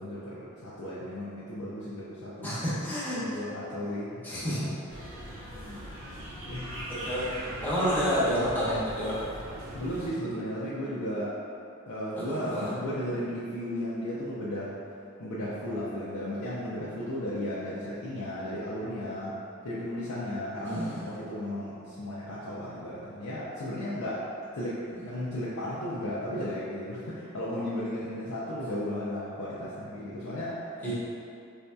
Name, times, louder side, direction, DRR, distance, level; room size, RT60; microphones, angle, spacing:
voice 1, 0.0-2.5 3.2-4.7 5.6-6.8 9.7-11.4 11.9-14.8 15.2-19.4 19.6-24.3 24.5-30.9, left 1 dB, 75° left, -9 dB, 0.5 m, -35 dB
voice 2, 2.4-3.2 4.2-4.6 7.0-7.3 7.6-9.1 12.3-12.7 20.6-21.0 30.8-30.9, equal, 10° left, -11 dB, 0.9 m, -29 dB
sound 1, 4.9-10.1, equal, 65° right, 0.8 m, -40 dB
4.0 x 2.7 x 2.2 m, 2.5 s
head